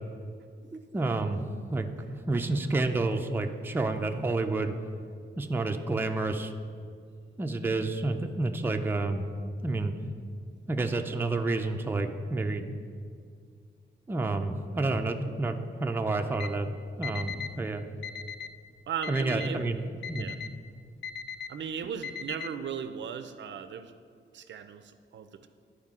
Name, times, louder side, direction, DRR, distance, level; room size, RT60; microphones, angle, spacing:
voice 1, 0.9-1.9 2.3-4.7 5.4-6.5 7.4-9.3 9.6-9.9 10.7-12.7 14.1-16.7 17.0-17.8 19.1-19.8 20.1-20.3, right 2 dB, 10° right, 5 dB, 0.4 m, -29 dB
Alarm, 16.3-16.5 17.0-17.5 18.0-18.5 19.0-19.5 20.0-20.5 21.0-21.5 22.0-22.5, left 7 dB, 65° left, 0.4 m, -38 dB
voice 2, 18.9-19.7 20.1-20.4 21.5-23.9 24.3-25.5, right 7 dB, 70° right, 10 dB, 0.5 m, -37 dB
12.0 x 4.8 x 3.6 m, 2.2 s
wide cardioid pair, 135°, 20 cm